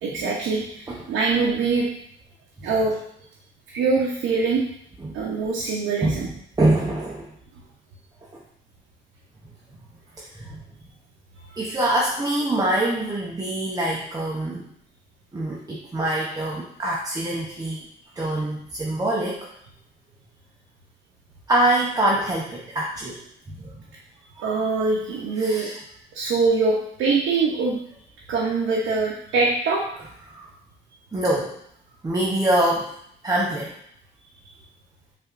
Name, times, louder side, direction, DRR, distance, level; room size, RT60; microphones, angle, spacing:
voice 1, 0.0-1.9 2.6-2.9 3.7-4.6 5.1-6.3 24.4-25.7 26.1-27.8 28.3-29.8, right 4 dB, 80° right, -4 dB, 0.7 m, -23 dB
voice 2, 6.0-7.3 8.3-8.4 10.2-10.6 11.6-14.7 15.3-17.9 18.1-19.5 21.5-23.2 23.5-23.8 25.4-25.8 30.3-30.5 31.1-31.6 32.0-32.9 33.2-33.7, right 1 dB, 20° right, -3 dB, 0.6 m, -25 dB
5.1 x 2.6 x 2.4 m, 0.70 s
cardioid pair, 90°, 20 cm